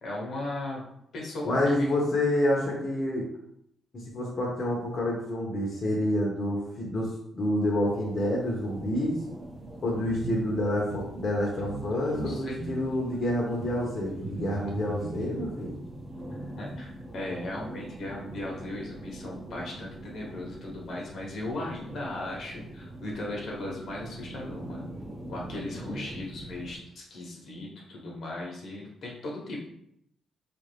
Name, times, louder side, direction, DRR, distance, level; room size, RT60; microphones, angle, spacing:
voice 1, 0.0-0.8 1.1-1.9 12.2-12.6 16.3-24.9 25.3-29.6, left 1 dB, 65° left, -2 dB, 1.0 m, -37 dB
voice 2, 1.5-3.3 3.9-9.2 9.8-15.7, left 1 dB, 45° left, -3 dB, 0.8 m, -28 dB
sound 1, 7.8-26.8, right 1 dB, 25° right, 0.7 m, -43 dB
sound 2, 10.0-10.4 10.9-11.0 11.6-11.8 12.1-12.9 13.6-13.7 14.2-15.4, right 2 dB, 80° right, 0.9 m, -37 dB
3.5 x 2.5 x 3.3 m, 0.74 s
cardioid pair, 105°, 0 cm